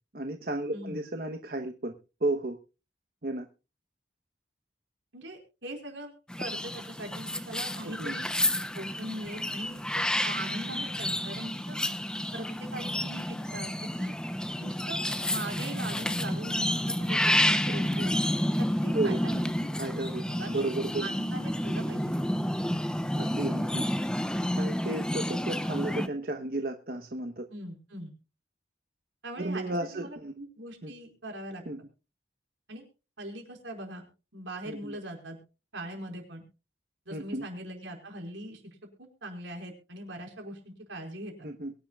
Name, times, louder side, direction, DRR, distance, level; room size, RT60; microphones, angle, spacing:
voice 1, 0.1-1.9 2.2-2.6 3.2-3.5 8.0-8.1 18.9-19.2 19.7-20.2 20.5-21.1 23.1-23.8 24.6-27.4 29.4-30.3 30.8-30.9 31.7-31.8 34.7-35.0 37.1-37.5 41.4-41.7, right 2 dB, 50° right, 5 dB, 1.0 m, -33 dB
voice 2, 5.1-8.3 8.7-11.8 12.3-14.1 14.6-15.0 15.3-18.2 18.6-19.5 20.2-20.6 21.0-22.1 27.5-28.1 29.2-31.6 32.7-32.9 33.2-34.1 34.3-35.4 35.7-36.4 37.1-41.5, right 1 dB, 80° right, 2 dB, 4.8 m, -41 dB
sound 1, 6.3-26.1, left 1 dB, 5° left, 0.6 m, -30 dB
23.0 x 10.5 x 2.3 m, 0.31 s
head